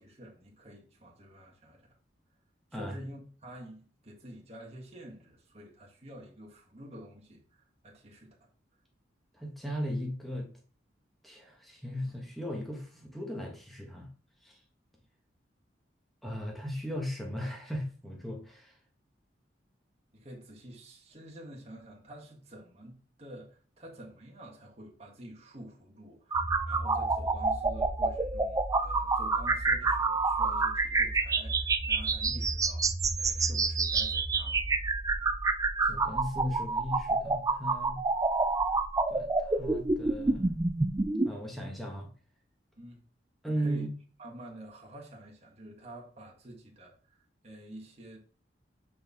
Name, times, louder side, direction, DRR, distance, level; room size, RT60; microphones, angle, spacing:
voice 1, 0.0-1.9 2.7-8.4 20.1-32.9 33.2-34.6 42.8-43.0 43.4-43.9 44.2-48.2, right 1 dB, 35° right, 1.5 m, -49 dB
voice 2, 9.4-10.5 11.2-14.1 14.4-14.6 16.2-18.7 35.9-38.0 39.1-40.5 41.2-42.1 43.4-43.9, equal, ahead, 1.3 m, -37 dB
sound 1, 26.3-41.3, right 3 dB, 20° right, 0.4 m, -28 dB
7.5 x 4.2 x 3.6 m
head